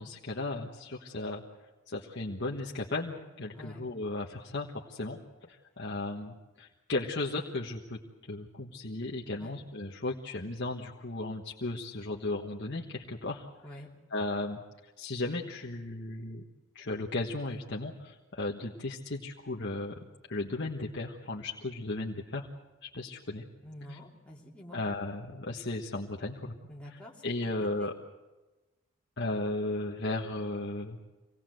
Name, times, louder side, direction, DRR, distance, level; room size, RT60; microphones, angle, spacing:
voice 1, 0.0-1.4 1.9-8.0 8.3-13.5 14.1-16.4 16.7-20.0 20.3-22.5 22.8-23.5 23.9-24.0 24.7-26.5 27.2-27.9 29.2-31.0, left 2 dB, 50° left, -2 dB, 1.4 m, -35 dB
voice 2, 23.6-24.8 26.7-27.9, equal, 5° left, -4 dB, 3.1 m, -48 dB
26.0 x 18.5 x 7.8 m, 1.2 s
head